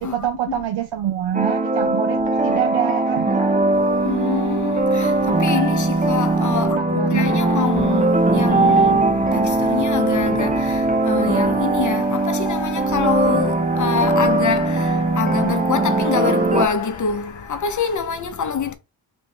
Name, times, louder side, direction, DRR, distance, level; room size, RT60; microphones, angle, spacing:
voice 1, 0.0-3.3 6.6-7.3, right 11 dB, 70° right, 0.6 m, -26 dB
sound 1, 1.3-16.7, right 2 dB, 20° right, 0.7 m, -20 dB
sound 2, 2.3-18.0, left 6 dB, 75° left, 1.1 m, -39 dB
voice 2, 4.0-9.0 9.3-18.7, left 6 dB, 40° left, 0.9 m, -25 dB
sound 3, 7.7-15.5 15.8-16.0 16.4-16.5, left 4 dB, 20° left, 1.2 m, -37 dB
3.1 x 2.6 x 4.2 m
cardioid pair, 60°, 45 cm